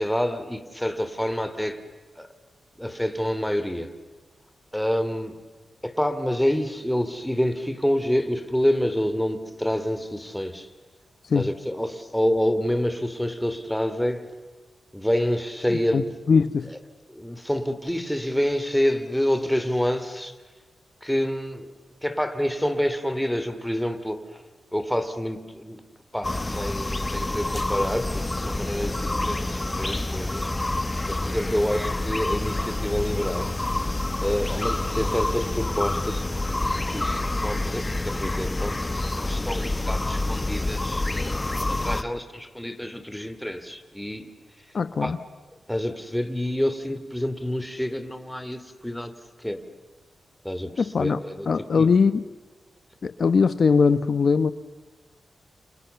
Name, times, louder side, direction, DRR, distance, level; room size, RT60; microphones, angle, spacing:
voice 1, 0.0-1.8 2.1-2.3 2.8-3.9 4.7-5.4 5.8-10.7 11.3-14.3 14.9-16.2 17.1-20.4 21.0-21.7 22.0-24.4 24.7-25.8 26.1-30.8 31.1-33.5 34.2-36.3 36.9-38.7 39.3-44.3 44.6-44.7 45.0-45.2 45.7-49.1 49.4-49.6 50.4-51.5 51.7-51.9, equal, 5° left, 9 dB, 3.0 m, -27 dB
voice 2, 16.3-16.7 44.7-45.2 50.8-51.2 51.5-52.2 53.0-54.5, left 5 dB, 60° left, 13 dB, 1.0 m, -20 dB
sound 1, 26.2-42.0, left 2 dB, 20° left, 1.3 m, -27 dB
29.5 x 28.0 x 7.0 m, 1.3 s
cardioid pair, 80°, 0 cm